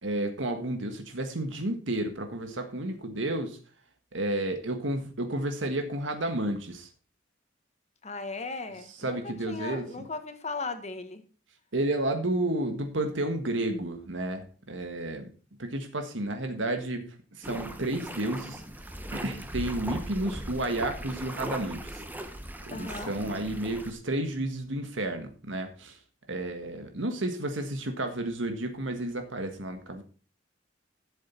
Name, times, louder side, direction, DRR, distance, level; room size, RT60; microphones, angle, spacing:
voice 1, 0.0-3.6 4.1-6.9 9.0-10.1 11.7-15.3 15.6-17.1 17.3-18.6 19.1-22.0 22.7-26.0 26.3-30.0, right 1 dB, 85° right, 6 dB, 1.6 m, -31 dB
voice 2, 8.0-11.2 22.7-23.2, left 3 dB, 35° left, 8 dB, 1.4 m, -37 dB
sound 1, 17.4-23.9, right 1 dB, 10° right, 1.1 m, -39 dB
12.0 x 7.5 x 4.4 m, 0.38 s
head